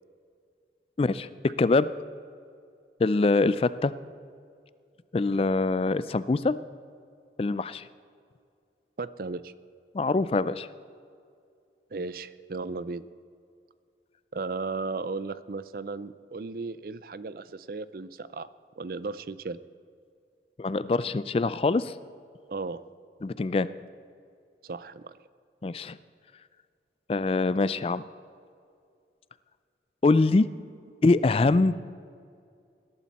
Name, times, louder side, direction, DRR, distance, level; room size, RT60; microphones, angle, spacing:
voice 1, 1.0-1.9 3.0-3.9 5.1-6.5 7.4-7.8 9.9-10.7 20.6-21.9 23.2-23.7 25.6-26.0 27.1-28.0 30.0-30.5 31.0-31.7, left 3 dB, 35° left, 16 dB, 0.3 m, -24 dB
voice 2, 9.0-9.5 11.9-13.0 14.3-18.5 18.8-19.6 22.5-22.8 24.6-25.2, right 3 dB, 55° right, 16 dB, 0.5 m, -35 dB
20.5 x 12.0 x 4.2 m, 2.3 s
head